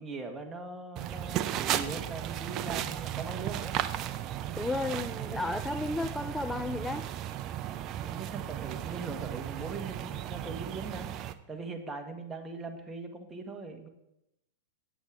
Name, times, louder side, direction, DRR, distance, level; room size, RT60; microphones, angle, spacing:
voice 1, 0.0-3.8 8.0-13.9, right 3 dB, 15° right, 4 dB, 1.5 m, -41 dB
sound 1, 1.0-11.3, right 11 dB, 40° right, 0.6 m, -35 dB
voice 2, 4.6-7.1, left 2 dB, 5° left, 10 dB, 0.4 m, -33 dB
8.3 x 8.0 x 4.9 m, 0.86 s
hypercardioid pair, 105°, 0 cm